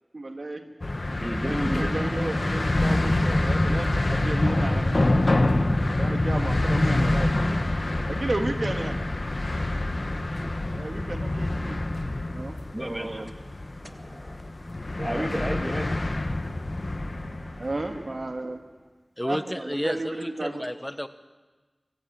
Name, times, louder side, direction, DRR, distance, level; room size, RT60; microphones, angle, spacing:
voice 1, 0.1-0.6 1.4-5.0 5.9-7.3 8.1-9.0 10.7-11.8 12.2-13.3 15.0-15.3 17.6-18.6 19.2-20.7, right 2 dB, 70° right, 5 dB, 2.1 m, -33 dB
sound 1, 0.8-18.1, left 2 dB, 60° left, 1.5 m, -26 dB
voice 2, 1.1-1.9 2.8-3.4 4.1-4.2 9.6-9.7 11.3-11.5 12.7-13.3 13.8-14.4 15.0-17.6 18.4-18.5, equal, 15° right, 5 dB, 2.2 m, -35 dB
voice 3, 19.2-21.1, equal, 10° left, 11 dB, 1.2 m, -31 dB
25.0 x 14.5 x 7.8 m, 1.3 s
wide cardioid pair, 45°, 0 cm